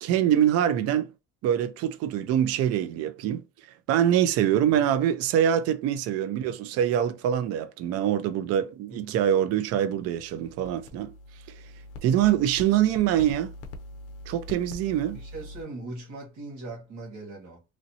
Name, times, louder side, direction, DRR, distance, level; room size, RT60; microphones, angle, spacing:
voice 1, 0.0-1.1 1.4-3.4 3.9-11.1 11.5-11.6 12.0-13.5 14.3-15.2, right 10 dB, 55° right, 0.4 m, -24 dB
voice 2, 8.9-9.2 15.1-17.6, right 2 dB, 70° right, 1.7 m, -40 dB
sound 1, 9.6-15.6, left 1 dB, 55° left, 0.5 m, -43 dB
3.1 x 2.6 x 2.7 m
cardioid pair, 155°, 29 cm